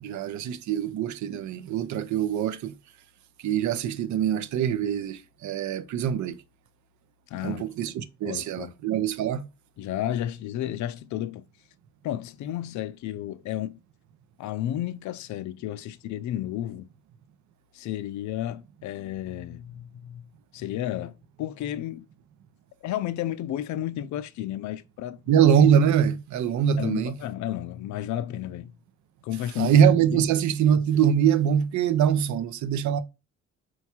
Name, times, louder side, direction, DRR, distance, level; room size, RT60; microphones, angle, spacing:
voice 1, 0.0-2.7 3.4-6.4 7.4-9.5 25.3-27.1 29.6-33.0, right 8 dB, 70° right, 0.6 m, -23 dB
voice 2, 7.3-7.7 8.3-8.7 9.8-11.5 12.0-13.8 14.4-16.9 17.7-22.1 22.8-25.2 26.8-28.8 29.2-29.8 30.1-30.2, left 12 dB, 70° left, 0.5 m, -32 dB
4.5 x 2.3 x 4.3 m
cardioid pair, 90°, 30 cm